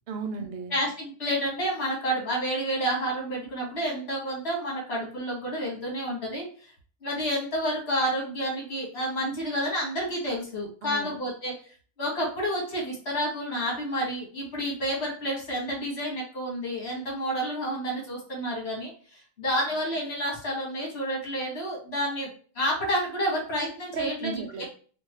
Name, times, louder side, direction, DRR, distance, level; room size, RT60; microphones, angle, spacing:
voice 1, 0.1-0.8 10.8-11.2 23.9-24.7, right 5 dB, 75° right, 6 dB, 0.8 m, -35 dB
voice 2, 0.7-6.7 7.0-11.5 12.0-22.3 22.5-24.4, equal, 80° left, -2 dB, 1.6 m, -30 dB
3.4 x 2.3 x 3.1 m, 0.43 s
omnidirectional pair, 1.1 m